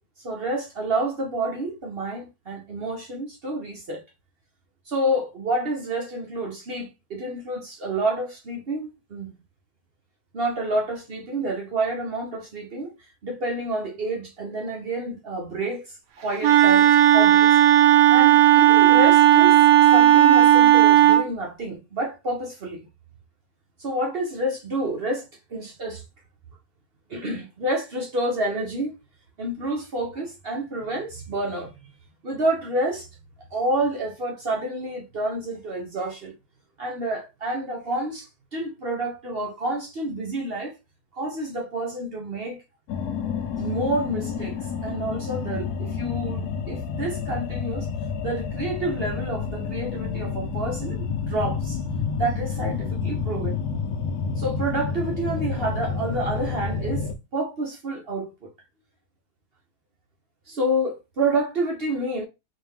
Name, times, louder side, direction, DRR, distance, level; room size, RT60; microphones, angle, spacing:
voice 1, 0.2-4.0 4.9-9.3 10.3-12.9 13.2-17.6 18.1-22.9 23.8-25.2 25.5-26.0 27.1-28.9 29.4-31.9 32.2-33.1 33.5-36.3 36.8-40.7 41.1-42.6 43.6-47.9 48.2-51.8 52.2-53.6 54.4-57.0 57.3-58.5 60.5-62.2, right 1 dB, 50° right, 0.7 m, -29 dB
Wind instrument woodwind instrument, 16.4-21.3, right 12 dB, 85° right, 1.4 m, -14 dB
sound 1, 42.9-57.2, left 5 dB, 75° left, 1.1 m, -29 dB
4.2 x 2.5 x 3.5 m
omnidirectional pair, 1.8 m